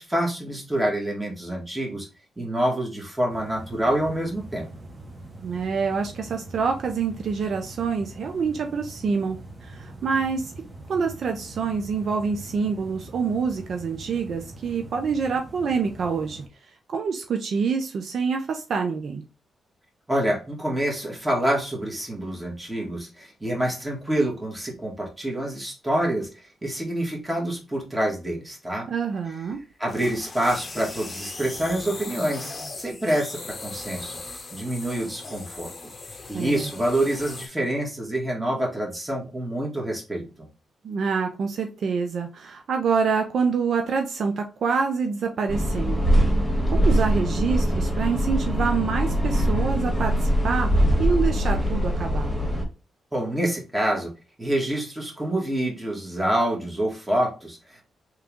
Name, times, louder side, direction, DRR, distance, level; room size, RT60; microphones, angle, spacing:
voice 1, 0.0-2.1 2.4-4.7 20.1-26.3 26.6-28.9 29.8-34.2 34.5-35.7 36.3-40.3 53.1-54.1 54.4-57.8, right 1 dB, 15° right, -1 dB, 2.0 m, -27 dB
sound 1, 3.3-16.5, right 2 dB, 35° right, 1.3 m, -43 dB
voice 2, 5.4-10.5 10.9-16.4 16.9-19.2 28.9-29.6 36.3-36.7 40.8-46.1 46.7-50.7 51.0-52.3, right 5 dB, 65° right, 4 dB, 0.6 m, -26 dB
sound 2, 29.5-37.5, left 3 dB, 35° left, 0.8 m, -39 dB
sound 3, 45.5-52.6, equal, 5° left, 2.0 m, -22 dB
3.5 x 3.1 x 3.6 m, 0.32 s
cardioid pair, 65°, 0 cm